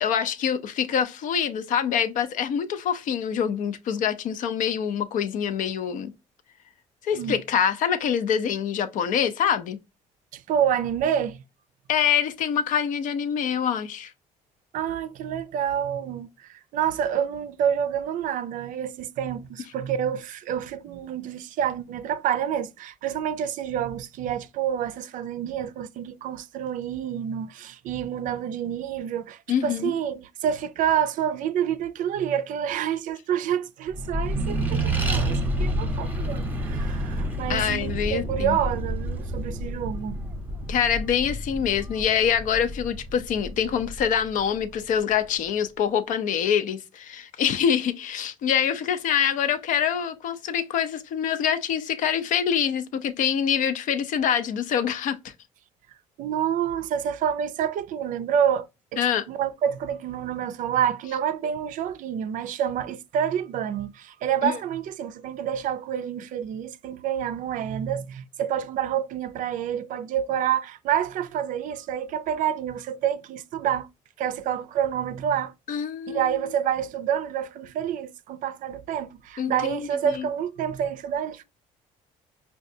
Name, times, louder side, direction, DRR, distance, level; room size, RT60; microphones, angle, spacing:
voice 1, 0.0-6.1 7.0-9.8 11.9-14.1 29.5-29.9 37.5-38.6 40.7-55.3 59.0-59.2 64.4-64.6 75.7-76.4 79.4-80.3, left 8 dB, 65° left, 0.6 m, -25 dB
voice 2, 10.3-11.4 14.7-40.2 56.2-73.9 74.2-75.5 76.1-81.4, right 9 dB, 65° right, 0.4 m, -28 dB
Accelerating revving vroom, 33.9-44.8, right 1 dB, 10° right, 0.8 m, -29 dB
4.9 x 2.3 x 2.7 m
cardioid pair, 110°, 14 cm